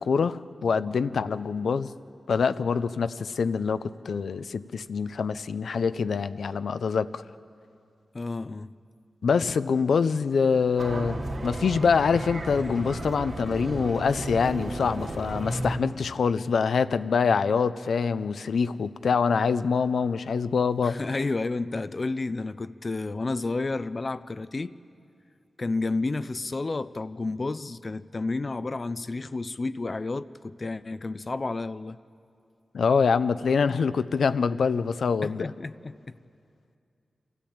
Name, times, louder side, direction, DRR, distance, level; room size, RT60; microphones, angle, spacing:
voice 1, 0.0-1.9 2.3-7.2 9.2-11.2 11.4-21.0 32.7-35.5, left 5 dB, 85° left, 0.5 m, -25 dB
voice 2, 8.1-8.7 20.8-24.7 25.6-32.0 35.2-36.0, left 3 dB, 35° left, 0.4 m, -31 dB
sound 1, 10.8-15.8, right 1 dB, 70° right, 2.5 m, -34 dB
27.5 x 13.5 x 8.7 m
wide cardioid pair, 125°, 0 cm